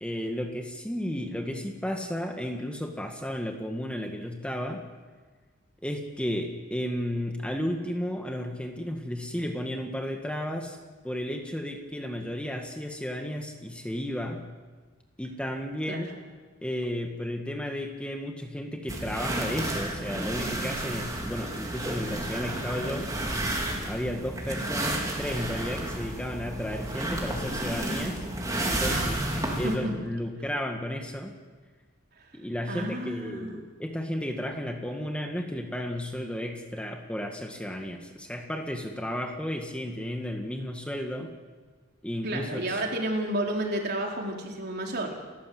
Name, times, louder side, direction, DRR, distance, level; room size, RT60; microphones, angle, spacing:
voice 1, 0.0-4.8 5.8-10.8 11.0-14.4 15.2-16.1 16.6-23.1 23.8-28.2 28.7-29.2 29.6-31.4 32.3-41.3 42.0-42.8, equal, 5° left, 3 dB, 1.7 m, -33 dB
sound 1, 18.9-29.8, right 1 dB, 20° right, 4.1 m, -31 dB
voice 2, 32.7-33.6 42.2-45.2, right 1 dB, 55° right, 0 dB, 4.1 m, -31 dB
30.0 x 14.0 x 7.9 m, 1.4 s
head